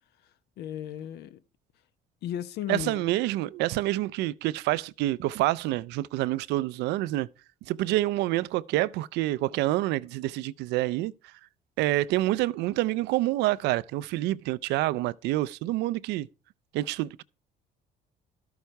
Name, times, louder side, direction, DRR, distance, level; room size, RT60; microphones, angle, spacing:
voice 1, 0.6-1.4 2.2-3.1, left 11 dB, 75° left, 0.9 m, -35 dB
voice 2, 2.7-7.3 7.7-11.1 11.8-16.3 16.7-17.2, right 16 dB, 85° right, 0.4 m, -27 dB
13.0 x 7.1 x 4.5 m
cardioid pair, 110°, 17 cm